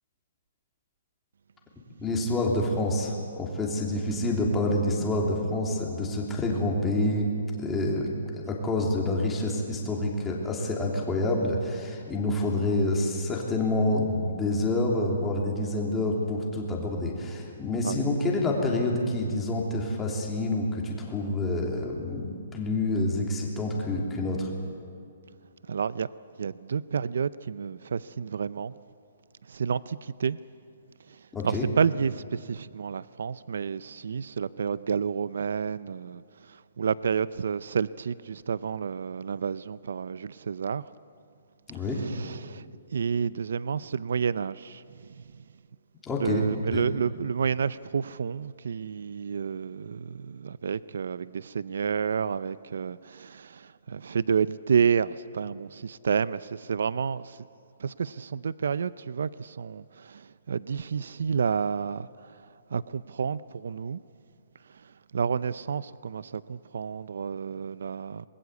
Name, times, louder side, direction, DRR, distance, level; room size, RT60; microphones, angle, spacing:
voice 1, 2.0-7.3 7.6-24.5 31.3-31.7 41.7-42.0 46.1-46.4 46.7-46.9, left 2 dB, 10° left, 3.2 m, -27 dB
voice 2, 25.7-26.1 26.4-28.7 29.5-30.4 31.1-31.2 31.4-40.8 41.9-42.6 42.9-45.2 46.2-57.4 57.8-62.4 62.7-64.0 65.1-68.2, right 6 dB, 70° right, 0.5 m, -30 dB
27.0 x 20.5 x 8.2 m
hypercardioid pair, 170°, 0 cm